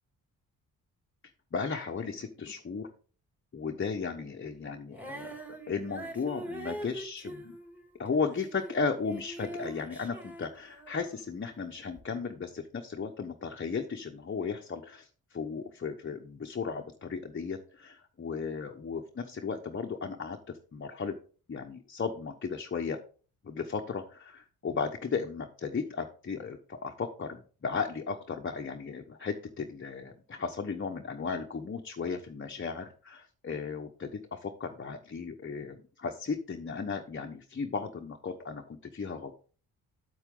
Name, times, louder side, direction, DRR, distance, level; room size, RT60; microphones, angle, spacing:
voice 1, 1.5-2.9 3.5-5.4 5.7-7.5 8.0-21.1 21.5-23.0 23.4-39.4, left 5 dB, 35° left, 3 dB, 1.1 m, -35 dB
Female singing, 4.9-11.3 12.0-12.1, right 1 dB, 5° right, 2.4 m, -43 dB
8.2 x 8.1 x 3.8 m, 0.39 s
cardioid pair, 70°, 37 cm